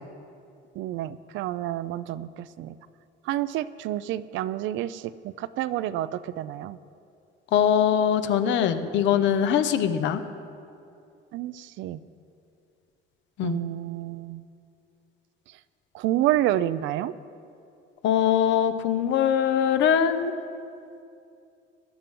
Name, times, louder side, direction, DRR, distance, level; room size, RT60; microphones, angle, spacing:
voice 1, 0.8-2.7 3.3-5.0 5.4-6.8 11.3-12.0 13.4-14.4 15.9-17.1, right 13 dB, 75° right, 16 dB, 0.5 m, -29 dB
voice 2, 7.5-10.2 13.4-13.6 18.0-20.3, left 9 dB, 70° left, 10 dB, 0.9 m, -22 dB
21.0 x 11.5 x 3.8 m, 2.5 s
cardioid pair, 145°, 20 cm